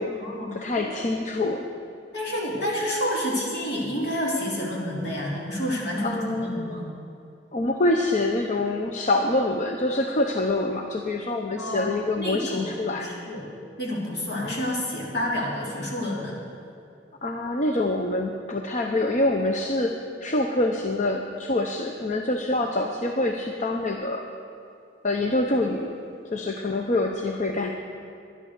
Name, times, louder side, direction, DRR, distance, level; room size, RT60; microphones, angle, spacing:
voice 1, 0.5-1.7 6.0-6.9 7.5-13.1 14.4-14.7 17.2-24.2 25.0-25.9 26.2-27.7, left 2 dB, 40° left, 3 dB, 0.7 m, -26 dB
voice 2, 2.1-6.8 11.6-11.9 12.2-13.5 13.8-16.4, equal, 65° left, -4 dB, 3.2 m, -29 dB
11.5 x 11.0 x 6.6 m, 2.6 s
head